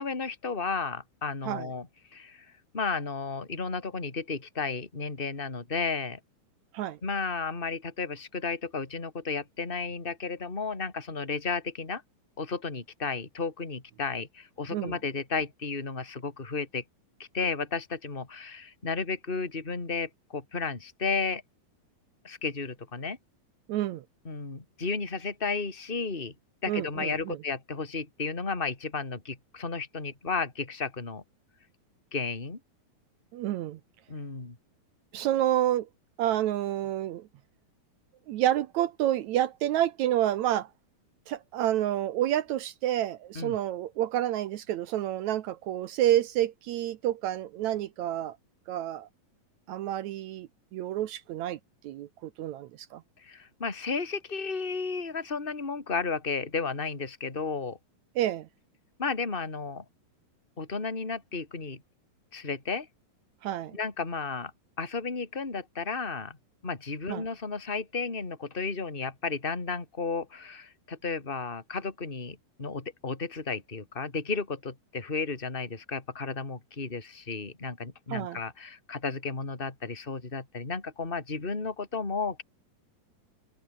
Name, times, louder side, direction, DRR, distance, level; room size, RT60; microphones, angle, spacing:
voice 1, 0.0-1.9 2.1-2.4 2.7-6.2 7.0-12.0 12.4-16.8 17.2-21.4 22.2-23.2 24.2-26.3 26.6-31.2 32.1-32.6 34.1-34.6 43.3-43.6 53.2-57.8 59.0-59.8 60.6-61.8 62.3-62.9 63.7-64.5 64.8-66.4 66.6-82.4, left 4 dB, 15° left, 3.2 m, -33 dB
voice 2, 23.7-24.0 26.7-27.4 33.3-33.8 35.1-35.9 36.2-37.3 38.3-40.7 41.3-48.4 48.7-49.1 49.7-53.0 58.2-58.5 63.4-63.8 67.1-67.3 78.1-78.4, right 12 dB, 75° right, 1.7 m, -29 dB
omnidirectional pair, 4.2 m